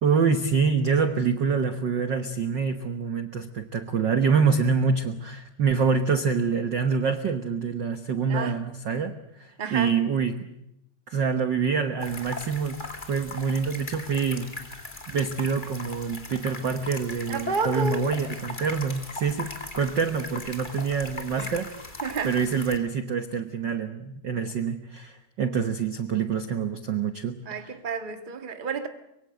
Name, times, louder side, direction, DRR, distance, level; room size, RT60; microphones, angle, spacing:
voice 1, 0.0-10.5 11.1-12.8 13.1-14.5 15.1-21.7 22.2-27.7, right 5 dB, 70° right, 1.0 m, -26 dB
voice 2, 9.6-9.9 17.3-18.1 21.4-21.5 22.0-22.4 27.4-28.9, right 5 dB, 45° right, 0.6 m, -30 dB
sound 1, 12.0-22.8, left 2 dB, 15° left, 1.9 m, -39 dB
24.5 x 23.0 x 7.8 m
omnidirectional pair, 3.8 m